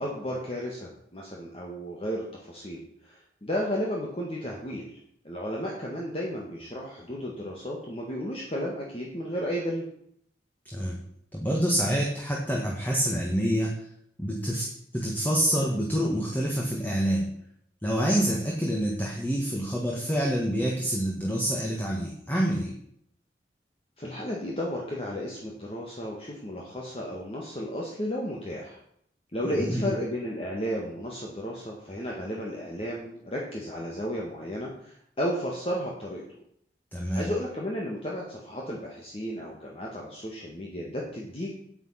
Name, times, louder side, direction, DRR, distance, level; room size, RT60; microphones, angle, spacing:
voice 1, 0.0-5.0 5.2-9.8 18.2-18.4 24.0-28.8 29.3-36.2 37.1-41.5, equal, 30° left, -3 dB, 1.7 m, -33 dB
voice 2, 11.3-13.7 14.2-14.7 14.9-17.3 17.8-22.7 29.4-29.9 36.9-37.3, equal, 10° left, -2 dB, 1.6 m, -27 dB
8.9 x 8.8 x 5.8 m, 0.68 s
head